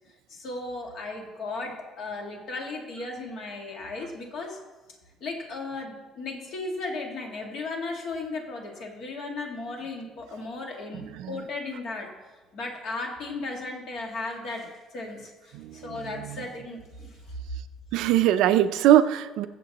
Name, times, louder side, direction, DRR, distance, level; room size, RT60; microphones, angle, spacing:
voice 1, 0.3-4.6 5.2-12.1 12.5-14.7 14.9-17.2, left 3 dB, 50° left, 1 dB, 2.1 m, -35 dB
voice 2, 10.9-11.5 15.5-16.5 17.9-19.5, right 12 dB, 80° right, 11 dB, 0.5 m, -23 dB
22.0 x 7.5 x 3.0 m, 1.2 s
cardioid pair, 160°, 0 cm